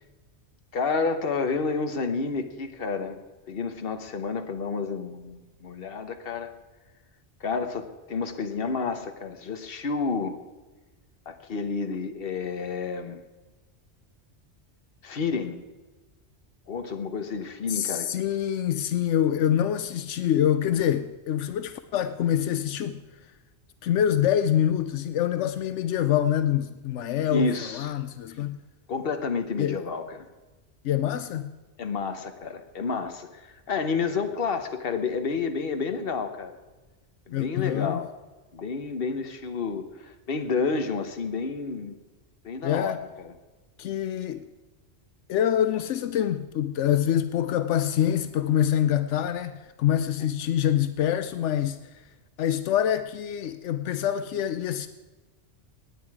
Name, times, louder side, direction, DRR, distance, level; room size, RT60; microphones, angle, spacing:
voice 1, 0.7-3.2 3.5-6.5 7.4-10.4 11.3-13.2 15.0-15.6 16.7-18.1 27.3-28.0 28.4-28.5 28.9-30.3 31.8-36.5 37.3-38.0 38.5-42.0 42.4-43.3, left 4 dB, 55° left, 1.3 m, -30 dB
voice 2, 17.7-23.0 23.8-28.6 29.6-29.8 30.8-31.5 37.3-38.0 42.6-43.0 43.8-44.5 45.3-51.8 52.4-54.9, left 10 dB, 85° left, 0.9 m, -25 dB
17.5 x 9.6 x 4.8 m
omnidirectional pair, 1.2 m